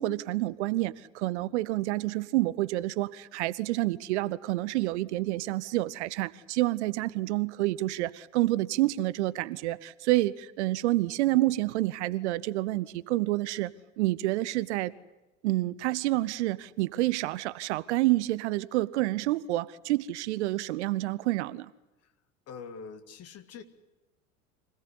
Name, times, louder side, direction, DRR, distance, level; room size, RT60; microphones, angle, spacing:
voice 1, 0.0-14.9 15.4-21.7, right 17 dB, 60° right, 0.8 m, -28 dB
voice 2, 22.5-23.6, left 5 dB, 40° left, 1.9 m, -44 dB
25.5 x 17.0 x 9.8 m
figure-of-eight pair, 70°, 39 cm